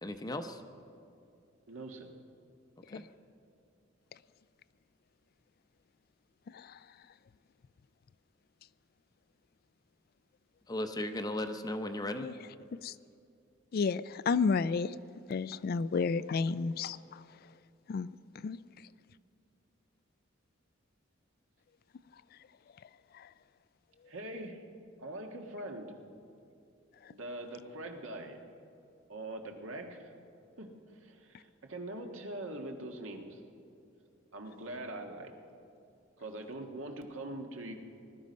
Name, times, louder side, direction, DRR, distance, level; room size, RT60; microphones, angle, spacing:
voice 1, 0.0-0.6 2.9-3.0 10.7-12.3, left 1 dB, 20° left, 8 dB, 0.7 m, -36 dB
voice 2, 1.7-2.1 24.1-24.6 25.0-25.9 27.1-28.4 29.1-30.1 30.6-33.4 34.3-35.3 36.2-37.7, right 1 dB, 80° right, 3 dB, 1.6 m, -42 dB
voice 3, 13.7-15.0 15.3-17.2 17.9-18.1 18.4-18.6 23.2-23.3, left 5 dB, 50° left, 17 dB, 0.3 m, -31 dB
20.0 x 12.5 x 5.3 m, 2.6 s
head